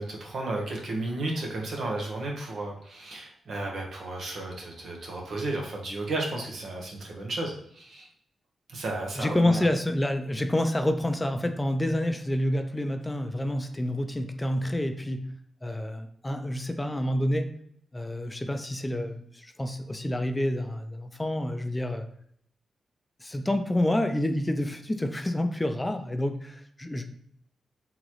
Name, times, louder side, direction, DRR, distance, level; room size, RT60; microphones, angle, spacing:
voice 1, 0.0-8.1 8.7-9.6, right 2 dB, 70° right, 0 dB, 1.0 m, -33 dB
voice 2, 9.2-15.2 15.6-17.5 17.9-22.1 23.2-27.1, left 1 dB, 15° left, 8 dB, 0.4 m, -28 dB
3.8 x 3.0 x 3.0 m, 0.67 s
cardioid pair, 60°, 0 cm